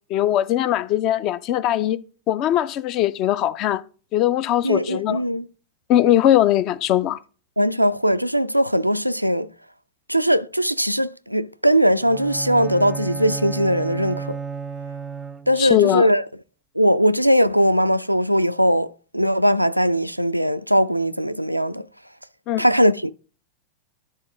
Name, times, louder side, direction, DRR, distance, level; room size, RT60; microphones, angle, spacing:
voice 1, 0.1-2.0 2.3-3.8 4.1-5.2 5.9-7.2 15.6-16.1 22.5-22.6, left 12 dB, 40° left, 0.4 m, -20 dB
voice 2, 4.6-5.5 7.6-9.5 10.1-14.4 15.5-16.2 16.8-21.9 22.6-23.1, equal, 90° right, 0.3 m, -20 dB
Bowed string instrument, 12.0-15.8, right 6 dB, 15° right, 0.4 m, -32 dB
12.0 x 4.2 x 3.6 m
figure-of-eight pair, 90°, 0 cm